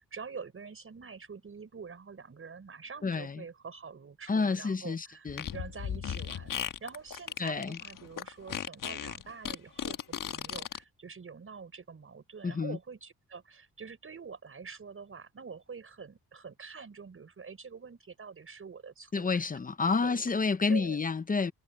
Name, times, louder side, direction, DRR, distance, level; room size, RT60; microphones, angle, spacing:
voice 1, 0.0-19.5 20.0-20.3 20.7-21.0, right 5 dB, 35° right, 6.0 m, -46 dB
voice 2, 3.0-3.4 4.3-5.5 7.4-7.8 12.4-12.8 19.1-21.5, left 4 dB, 20° left, 0.7 m, -29 dB
Fart, 5.3-10.8, left 8 dB, 55° left, 1.3 m, -36 dB
wide cardioid pair, 175°, 38 cm